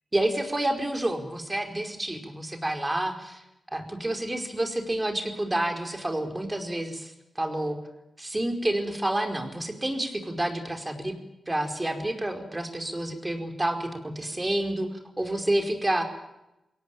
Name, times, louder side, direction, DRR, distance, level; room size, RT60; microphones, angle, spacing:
voice 1, 0.1-3.4 3.7-7.8 8.2-11.1 11.5-16.0, right 1 dB, 20° right, 5 dB, 4.8 m, -29 dB
22.5 x 18.0 x 9.1 m, 0.92 s
cardioid pair, 60°, 0 cm